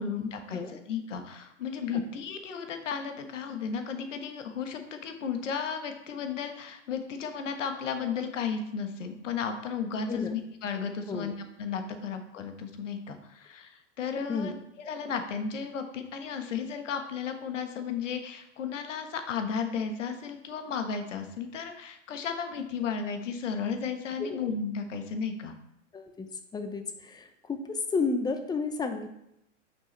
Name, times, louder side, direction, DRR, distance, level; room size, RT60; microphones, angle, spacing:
voice 1, 0.0-11.3 11.6-25.5, left 6 dB, 75° left, 6 dB, 1.3 m, -34 dB
voice 2, 25.9-29.1, left 4 dB, 10° left, 8 dB, 0.7 m, -32 dB
9.1 x 5.9 x 3.3 m, 0.80 s
hypercardioid pair, 105°, 38 cm